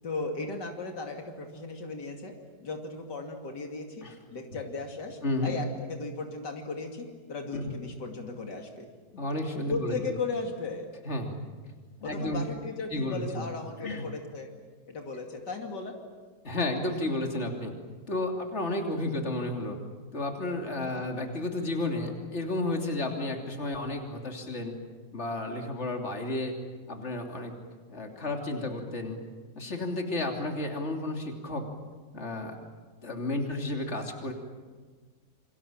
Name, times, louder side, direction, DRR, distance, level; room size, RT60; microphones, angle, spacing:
voice 1, 0.0-8.9 9.7-10.9 12.0-14.5 14.9-16.0 20.8-21.0, left 3 dB, 85° left, 3 dB, 3.1 m, -36 dB
voice 2, 5.2-5.5 7.5-7.7 9.1-9.9 11.0-11.4 12.0-12.5 12.9-13.5 13.8-14.1 16.4-17.7 18.1-19.8 20.1-24.7 25.1-26.5 26.9-27.5 27.9-29.2 29.5-31.6 32.1-32.5 33.0-34.3, left 2 dB, 40° left, 2 dB, 3.4 m, -32 dB
28.0 x 25.0 x 7.5 m, 1.5 s
omnidirectional pair, 1.8 m